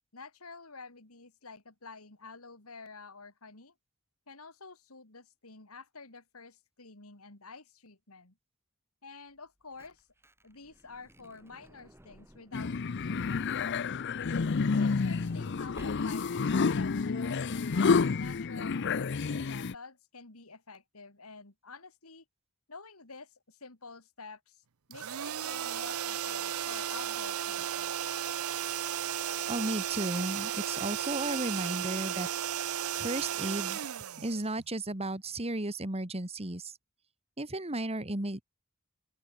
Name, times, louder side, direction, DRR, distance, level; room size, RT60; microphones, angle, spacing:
voice 1, 0.1-3.7 4.3-8.4 9.0-10.1 10.4-13.9 14.6-17.7 18.2-22.2 22.7-24.6 24.9-27.9, left 4 dB, 80° left, 3.2 m, -49 dB
Truck / Door, 9.4-12.9 13.9-16.5 17.2-17.3 17.4-17.6, equal, 10° right, 5.7 m, -56 dB
sound 1, 12.5-19.7, left 4 dB, 55° left, 0.5 m, -29 dB
sound 2, 24.9-34.9, right 10 dB, 75° right, 0.7 m, -34 dB
voice 2, 29.5-32.7 32.9-33.8 34.2-36.7 37.4-38.4, right 2 dB, 30° right, 2.2 m, -34 dB
open air
head